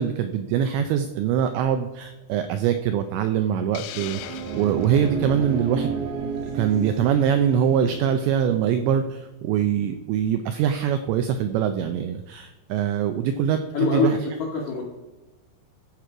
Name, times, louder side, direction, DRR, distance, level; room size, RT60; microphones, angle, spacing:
voice 1, 0.0-6.0 6.5-14.2, right 9 dB, 85° right, 8 dB, 2.5 m, -23 dB
Hiss, 3.7-5.1, left 12 dB, 90° left, 2.4 m, -39 dB
sound 1, 3.9-8.5, right 5 dB, 65° right, 2.3 m, -32 dB
voice 2, 13.7-14.8, left 4 dB, 70° left, -2 dB, 2.1 m, -24 dB
15.0 x 6.1 x 4.9 m, 1.1 s
omnidirectional pair, 5.7 m